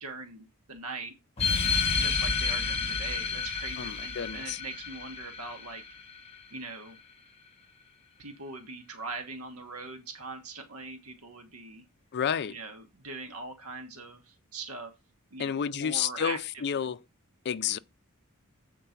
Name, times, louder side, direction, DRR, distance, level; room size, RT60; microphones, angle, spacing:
voice 1, 0.0-1.1 1.9-5.8 6.5-7.0 8.2-11.8 12.5-14.9 15.3-16.9, right 3 dB, 75° right, 1.4 m, -41 dB
sound 1, 1.4-6.4, left 5 dB, 30° left, 1.3 m, -30 dB
voice 2, 3.8-4.6 12.1-12.6 15.4-17.0 17.4-17.8, left 8 dB, 50° left, 0.4 m, -30 dB
7.8 x 4.5 x 5.8 m
head